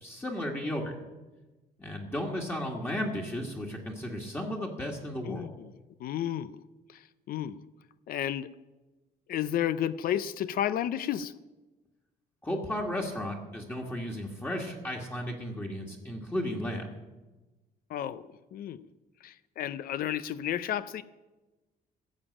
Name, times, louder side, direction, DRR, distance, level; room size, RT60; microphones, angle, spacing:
voice 1, 0.0-0.9 1.8-5.5 12.4-16.8, left 1 dB, 15° left, -1 dB, 1.7 m, -34 dB
voice 2, 5.2-5.7 6.0-6.6 6.9-7.0 7.3-7.6 8.1-8.5 9.3-11.3 17.9-18.9 19.2-21.0, left 10 dB, 65° left, 15 dB, 0.5 m, -32 dB
14.5 x 7.2 x 8.6 m, 1.1 s
cardioid pair, 150°, 16 cm